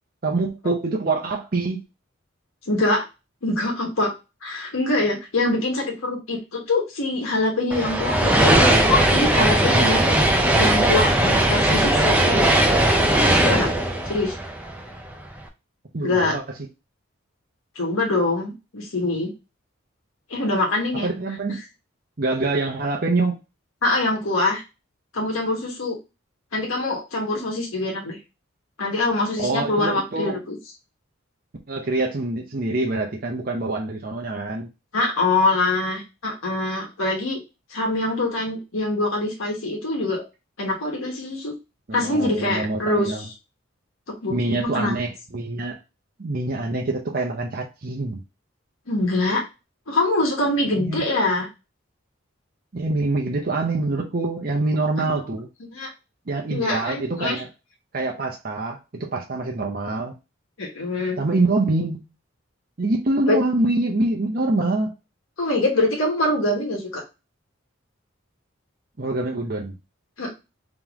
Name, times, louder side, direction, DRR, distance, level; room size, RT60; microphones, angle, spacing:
voice 1, 0.2-1.8 15.9-16.4 21.0-21.6 22.2-23.4 29.4-30.4 31.7-34.7 41.9-43.2 44.3-45.8 46.2-48.2 50.8-51.0 52.7-55.5 56.3-57.5 57.9-60.1 61.2-62.0 62.8-64.9 69.0-69.8, right 2 dB, 45° right, 0 dB, 0.7 m, -25 dB
voice 2, 2.7-3.1 3.4-4.1 4.4-10.0 10.6-12.5 13.4-13.7 14.1-14.3 16.0-16.4 17.7-19.3 20.3-21.1 23.8-24.6 25.1-26.0 26.5-28.2 28.8-30.6 34.9-37.4 37.7-40.2 40.6-41.5 41.9-43.3 44.2-44.9 48.9-49.5 49.9-51.5 55.0-55.2 55.7-55.9 56.5-57.4 60.6-61.2 63.3-63.4 65.4-67.0 70.2-70.3, left 2 dB, 90° left, 0 dB, 1.3 m, -24 dB
sound 1, 7.7-15.1, right 1 dB, 5° right, 0.6 m, -18 dB
3.7 x 3.0 x 3.5 m, 0.27 s
head